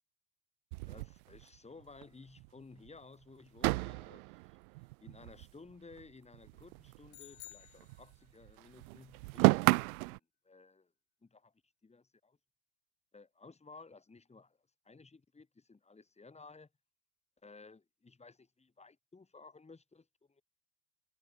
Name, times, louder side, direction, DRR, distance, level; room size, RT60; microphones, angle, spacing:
sound 1, 0.7-2.0 2.4-2.5 2.8-2.9 3.6-6.1 6.3-8.2 8.4-10.2, right 27 dB, 70° right, 0.6 m, -33 dB
voice 1, 0.9-4.6 5.0-10.9 11.2-11.5 11.8-12.4 13.1-14.6 14.9-16.7 17.4-20.4, left 4 dB, 15° left, 5.4 m, -56 dB
sound 2, 7.1-8.6, left 18 dB, 80° left, 1.5 m, -54 dB
supercardioid pair, 105°, 45 cm